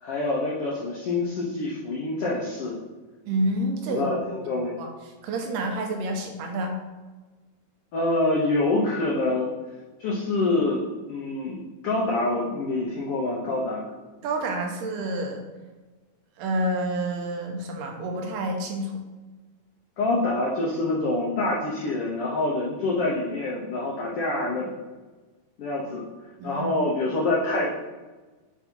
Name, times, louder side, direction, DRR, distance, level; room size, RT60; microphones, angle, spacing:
voice 1, 0.0-2.8 3.9-4.8 7.9-9.5 10.0-13.9 20.0-24.7 25.6-26.1 26.4-27.7, left 2 dB, 85° left, -4 dB, 1.3 m, -26 dB
voice 2, 3.3-4.1 4.6-4.9 5.2-6.8 14.2-15.4 16.4-18.9 26.4-26.8, right 1 dB, 85° right, 2 dB, 2.3 m, -28 dB
7.9 x 2.7 x 4.4 m, 1.2 s
omnidirectional pair, 3.8 m